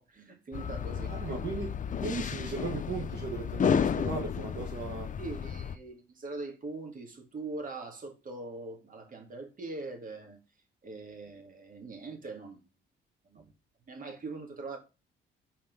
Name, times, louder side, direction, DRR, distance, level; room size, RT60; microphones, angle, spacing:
voice 1, 0.0-1.1 5.2-10.4 10.8-12.6 13.3-13.4 13.9-14.8, right 3 dB, 45° right, 2.2 m, -42 dB
sound 1, 0.5-5.8, left 7 dB, 40° left, 0.6 m, -32 dB
voice 2, 1.0-5.2, right 4 dB, 60° right, 1.4 m, -37 dB
5.9 x 4.2 x 5.4 m
cardioid pair, 90°, 20 cm